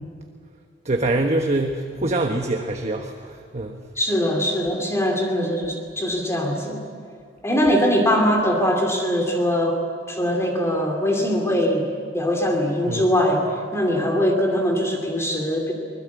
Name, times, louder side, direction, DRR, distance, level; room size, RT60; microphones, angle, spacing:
voice 1, 0.8-3.8 12.9-13.1, right 2 dB, 35° right, 3 dB, 1.3 m, -24 dB
voice 2, 4.0-6.8 7.4-9.8 10.1-11.9 12.1-13.4 13.7-15.7, equal, 15° left, 1 dB, 2.6 m, -21 dB
24.5 x 20.5 x 8.3 m, 2.3 s
head